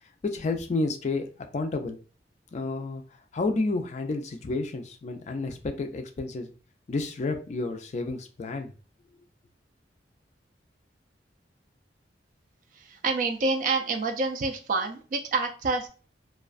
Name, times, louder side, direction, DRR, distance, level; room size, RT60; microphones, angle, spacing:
voice 1, 0.2-1.3 1.5-2.0 2.5-3.0 3.3-6.5 6.9-8.7, left 3 dB, 40° left, 5 dB, 0.3 m, -30 dB
voice 2, 12.7-15.9, right 3 dB, 45° right, 5 dB, 0.3 m, -27 dB
2.3 x 2.2 x 2.4 m, 0.38 s
head